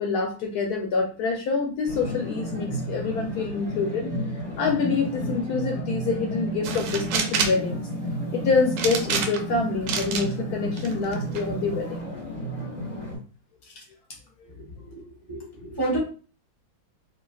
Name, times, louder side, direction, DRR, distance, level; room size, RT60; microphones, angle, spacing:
voice 1, 0.0-4.1 4.6-7.8 8.3-12.1 13.8-13.9, left 4 dB, 70° left, 1 dB, 1.0 m, -26 dB
sound 1, 1.9-13.2, equal, 10° left, 0.9 m, -32 dB
sound 2, 6.6-7.6 8.8-9.5 9.9-10.3 10.8-11.4, right 6 dB, 80° right, 1.2 m, -27 dB
voice 2, 14.6-15.0 15.3-16.0, right 2 dB, 20° right, -6 dB, 0.9 m, -30 dB
3.4 x 2.4 x 2.3 m, 0.37 s
omnidirectional pair, 1.9 m